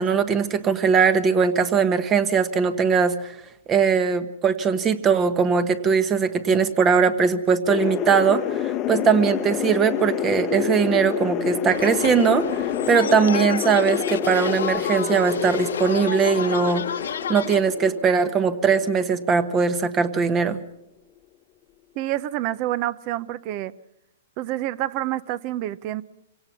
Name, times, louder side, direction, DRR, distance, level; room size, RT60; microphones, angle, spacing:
voice 1, 0.0-3.3 3.7-16.8 17.3-20.6, right 6 dB, 20° right, 13 dB, 1.2 m, -20 dB
sound 1, 7.7-20.0, left 10 dB, 25° left, 0.9 m, -28 dB
sound 2, 11.7-17.6, left 8 dB, 85° left, 1.2 m, -31 dB
voice 2, 22.0-23.7 24.4-26.0, right 14 dB, 35° right, 19 dB, 0.8 m, -28 dB
25.5 x 17.5 x 6.0 m, 0.83 s
hypercardioid pair, 155°, 0 cm